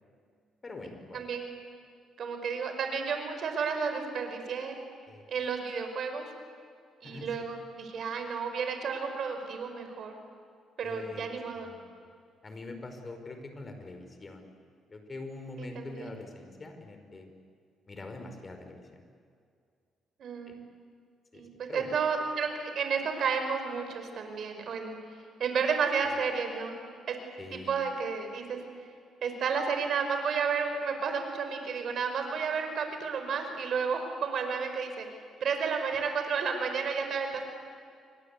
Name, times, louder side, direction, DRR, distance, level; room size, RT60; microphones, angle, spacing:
voice 1, 0.6-1.2 5.1-5.2 7.0-7.3 10.8-11.2 11.5-11.8 12.0-12.1 12.4-14.5 14.9-17.3 17.9-19.0 20.5-20.6 21.3-21.4 21.7-21.9 27.4-27.7, left 2 dB, 25° left, 6 dB, 4.8 m, -43 dB
voice 2, 1.1-1.5 2.2-4.8 5.3-6.3 7.0-10.1 10.8-11.7 15.6-16.1 20.2-20.6 21.3-25.0 25.4-26.8 27.1-27.2 27.7-28.6 29.2-35.1 35.4-37.5, right 5 dB, 60° right, 6 dB, 5.1 m, -32 dB
28.5 x 23.5 x 8.4 m, 2.2 s
cardioid pair, 105°, 0 cm